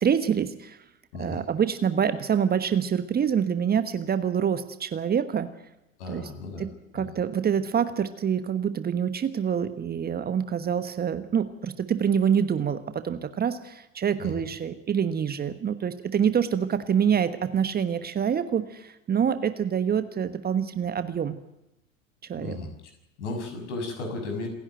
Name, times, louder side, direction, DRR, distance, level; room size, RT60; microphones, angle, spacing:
voice 1, 0.0-0.8 1.2-5.5 6.1-6.3 6.6-21.4 22.3-22.6, right 8 dB, 25° right, 11 dB, 1.2 m, -26 dB
voice 2, 1.1-1.4 6.0-6.6 6.9-7.1 14.2-14.4 22.4-22.7 23.2-24.5, left 3 dB, 60° left, 4 dB, 6.6 m, -34 dB
27.5 x 11.0 x 9.2 m, 0.92 s
figure-of-eight pair, 75°, 40 cm